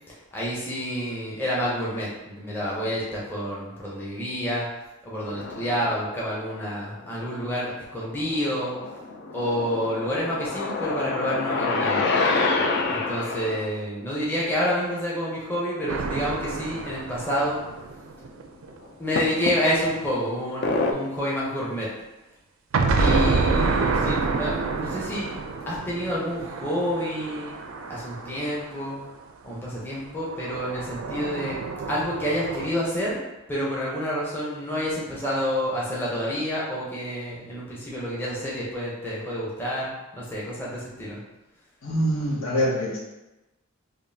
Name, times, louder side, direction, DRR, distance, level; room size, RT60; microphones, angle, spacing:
voice 1, 0.1-4.7 5.0-8.8 9.3-12.0 12.9-17.6 19.0-21.9 23.0-25.3 25.6-27.5 27.9-29.0 29.4-31.6 31.9-33.2 33.5-41.2, equal, 10° left, -7 dB, 0.7 m, -28 dB
sound 1, 5.3-5.9 6.7-7.5 8.0-13.7 16.1-16.2 16.5-16.6 17.4-17.5 19.2-20.0 20.6-20.9, left 3 dB, 50° left, 0.4 m, -27 dB
sound 2, 15.9-18.7 22.7-29.0 30.3-32.7, right 4 dB, 65° right, 0.4 m, -28 dB
voice 2, 41.8-43.0, equal, 70° left, -5 dB, 1.1 m, -24 dB
5.2 x 2.3 x 2.7 m, 1.0 s
head